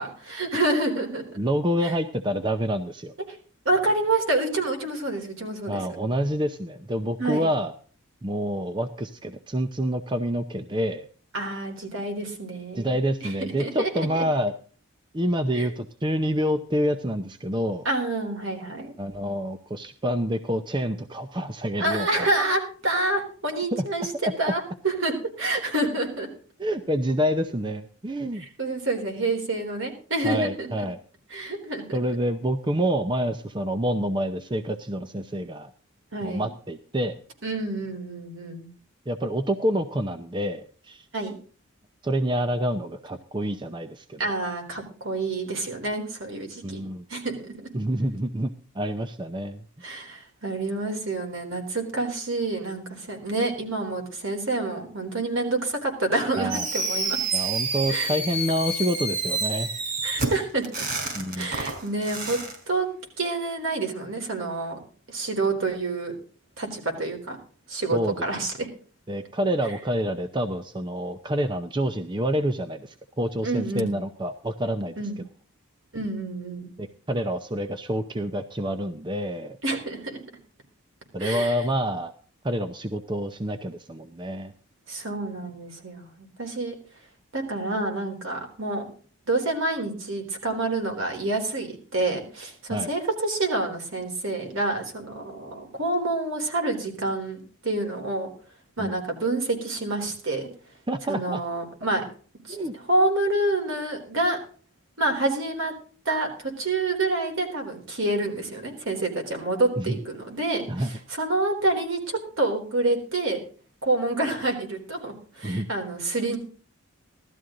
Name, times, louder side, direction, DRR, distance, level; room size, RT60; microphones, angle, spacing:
voice 1, 0.0-1.4 1.8-1.9 3.7-5.8 7.2-7.5 11.3-12.9 13.2-14.2 15.5-15.7 17.8-18.9 21.8-24.1 24.4-26.3 28.3-30.7 31.3-32.2 36.1-36.5 37.4-38.7 41.1-41.3 44.2-46.8 47.1-47.7 49.8-57.5 57.9-58.1 60.0-60.9 61.3-62.4 62.7-62.9 63.2-64.8 65.1-66.1 66.6-67.4 67.7-68.7 73.4-74.0 75.0-75.2 75.9-76.7 79.6-80.2 81.2-81.6 84.9-86.7 87.3-88.9 89.3-98.3 98.8-100.5 101.1-102.0 102.5-102.6 102.9-104.4 105.0-105.7 106.1-113.4 113.8-116.4, right 2 dB, 65° right, 3 dB, 3.8 m, -28 dB
voice 2, 1.4-3.1 5.7-7.7 8.2-11.1 12.8-14.5 15.1-17.8 19.0-22.3 23.7-23.8 24.2-24.3 26.6-28.4 30.2-31.0 31.9-35.7 36.2-37.2 39.1-41.1 42.0-44.2 46.6-47.0 47.7-49.6 56.4-56.7 57.3-59.7 61.1-61.5 67.9-68.1 69.1-74.9 76.8-79.6 81.1-82.1 82.4-84.5 92.7-92.9 98.8-98.9 100.9-101.4 102.5-102.7 109.8-109.9 110.7-110.9 115.4-115.7, equal, 20° right, 9 dB, 0.6 m, -27 dB
Fireworks, 56.5-62.5, right 3 dB, 45° right, 4.1 m, -29 dB
17.0 x 12.5 x 3.8 m, 0.41 s
head